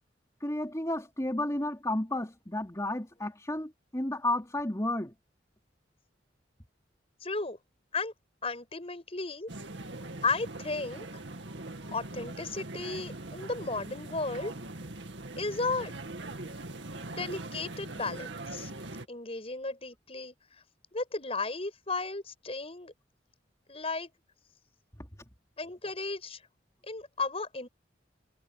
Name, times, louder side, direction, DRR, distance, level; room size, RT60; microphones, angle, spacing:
voice 1, 0.4-5.1, left 1 dB, 15° left, 3.3 m, -32 dB
voice 2, 7.2-7.6 7.9-8.1 8.4-9.5 10.2-11.1 11.9-14.5 15.4-15.9 16.4-16.6 17.1-18.7 19.1-20.3 20.9-22.9 23.7-24.1 25.6-26.4 26.9-27.7, left 3 dB, 35° left, 6.0 m, -34 dB
sound 1, 9.5-19.0, right 2 dB, 75° right, 2.2 m, -41 dB
head